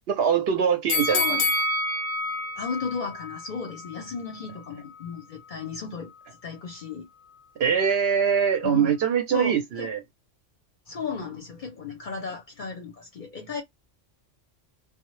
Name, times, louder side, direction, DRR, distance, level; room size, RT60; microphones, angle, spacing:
voice 1, 0.1-1.4 7.6-10.0, right 7 dB, 65° right, 0.7 m, -23 dB
sound 1, 0.9-4.0 4.4-4.5, left 2 dB, 85° left, 0.9 m, -28 dB
voice 2, 1.0-1.5 2.6-6.1 6.4-7.1 8.6-9.0 9.3-9.9 10.9-13.6, left 5 dB, 55° left, 0.6 m, -35 dB
2.1 x 2.0 x 3.0 m
omnidirectional pair, 1.3 m